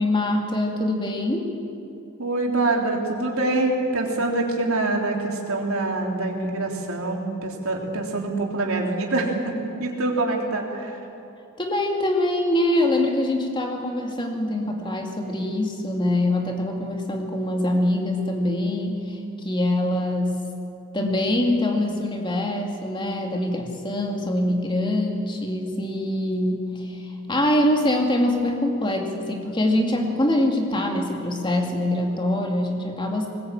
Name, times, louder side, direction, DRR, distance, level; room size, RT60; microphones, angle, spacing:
voice 1, 0.0-1.5 11.6-20.4 20.9-33.3, left 1 dB, 20° left, 2 dB, 2.4 m, -24 dB
voice 2, 2.2-9.5 9.8-11.0, right 2 dB, 75° right, 0 dB, 3.5 m, -25 dB
20.5 x 19.5 x 9.0 m, 2.7 s
head